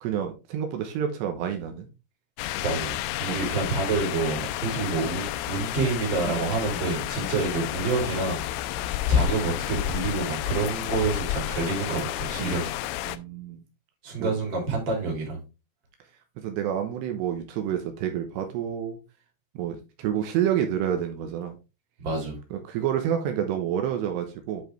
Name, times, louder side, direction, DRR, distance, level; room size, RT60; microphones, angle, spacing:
voice 1, 0.0-1.9 3.3-3.4 6.2-6.6 12.4-12.5 13.0-13.6 14.2-14.3 16.4-19.0 19.5-21.6 22.5-24.6, right 9 dB, 80° right, 5 dB, 3.1 m, -29 dB
sound 1, 2.4-13.2, left 12 dB, 85° left, 2.5 m, -30 dB
voice 2, 2.6-8.4 9.1-12.6 14.0-15.4 22.0-22.4, right 4 dB, 30° right, -1 dB, 3.3 m, -28 dB
10.5 x 4.9 x 3.4 m, 0.29 s
omnidirectional pair, 5.0 m